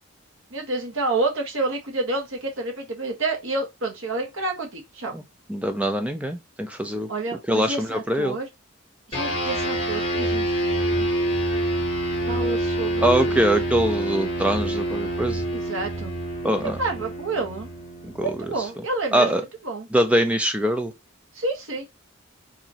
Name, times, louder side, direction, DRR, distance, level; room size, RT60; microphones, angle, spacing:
voice 1, 0.5-5.1 7.1-8.5 9.1-11.1 12.3-13.5 15.5-16.1 16.6-17.7 18.2-19.9 21.3-21.8, right 2 dB, 70° right, 1.5 m, -29 dB
voice 2, 5.5-7.1 7.5-8.4 13.0-15.4 16.4-16.8 18.2-18.3 19.1-19.4 19.9-20.9, right 1 dB, 5° right, 0.6 m, -23 dB
sound 1, 9.1-18.8, right 1 dB, 25° left, 1.9 m, -27 dB
4.9 x 2.9 x 2.9 m
head